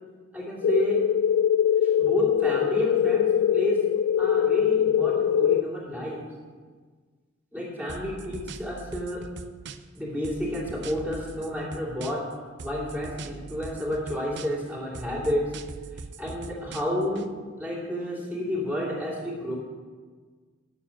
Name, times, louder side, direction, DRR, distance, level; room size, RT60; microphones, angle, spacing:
voice 1, 0.3-1.0 1.8-6.3 7.5-9.3 9.9-12.3 12.6-15.5 16.2-19.6, equal, 5° right, -5 dB, 2.8 m, -31 dB
sound 1, 0.6-5.6, left 9 dB, 70° left, 0.4 m, -22 dB
sound 2, 7.9-10.0 10.2-12.3 12.6-14.7 14.9-17.3, right 4 dB, 65° right, 0.6 m, -41 dB
8.7 x 7.0 x 8.7 m, 1.5 s
head